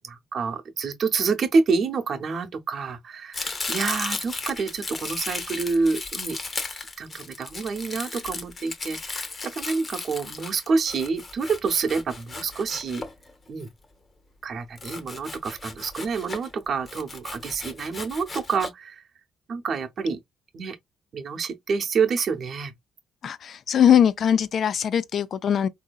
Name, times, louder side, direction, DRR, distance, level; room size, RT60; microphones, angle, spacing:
voice 1, 0.0-6.4 7.0-13.0 13.5-13.7 14.4-19.0 19.5-20.2 20.5-20.8 21.1-22.7, right 4 dB, 55° right, 0.8 m, -27 dB
Domestic sounds home sounds, 3.3-13.6 14.8-16.5 16.9-18.7, left 3 dB, 35° left, 0.8 m, -35 dB
voice 2, 23.2-25.7, left 9 dB, 60° left, 0.4 m, -21 dB
3.7 x 2.7 x 2.3 m
cardioid pair, 90°, 0 cm